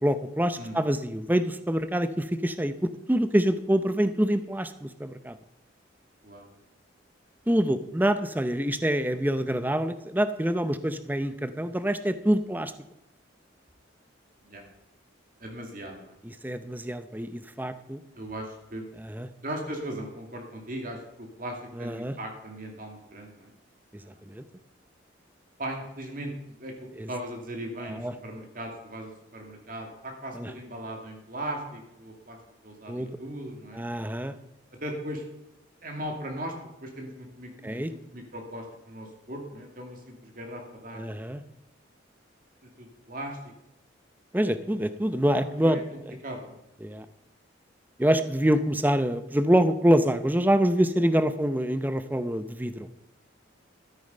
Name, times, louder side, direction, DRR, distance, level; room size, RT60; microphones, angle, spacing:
voice 1, 0.0-5.4 7.5-12.7 16.2-18.0 19.0-19.3 21.8-22.1 24.3-24.4 27.0-27.1 27.9-28.1 30.3-30.5 32.9-33.2 33.7-34.3 37.6-37.9 40.9-41.4 44.3-45.8 46.8-47.1 48.0-52.9, equal, 10° right, 11 dB, 0.6 m, -26 dB
voice 2, 15.4-16.2 18.2-18.8 19.4-23.5 24.0-24.2 25.6-26.3 26.6-33.8 34.8-35.2 35.8-36.5 36.8-41.0 42.8-43.4 45.3-45.8 46.2-46.6, right 1 dB, 45° right, 2 dB, 2.4 m, -38 dB
13.0 x 9.1 x 5.4 m, 0.88 s
head